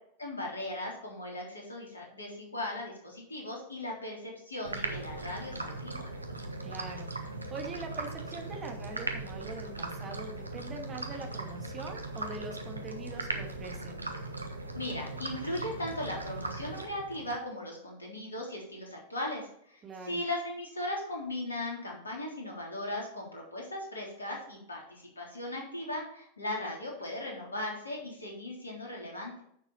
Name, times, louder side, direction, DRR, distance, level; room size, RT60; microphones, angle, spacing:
voice 1, 0.2-6.1 14.7-29.4, left 1 dB, 75° left, -1 dB, 3.6 m, -38 dB
sound 1, 4.6-17.3, right 2 dB, 80° right, 1.2 m, -39 dB
voice 2, 6.6-7.1 7.5-14.0 19.8-20.2, right 3 dB, 25° right, 4 dB, 2.0 m, -43 dB
10.0 x 6.9 x 4.3 m, 0.68 s
figure-of-eight pair, 90°, 0 cm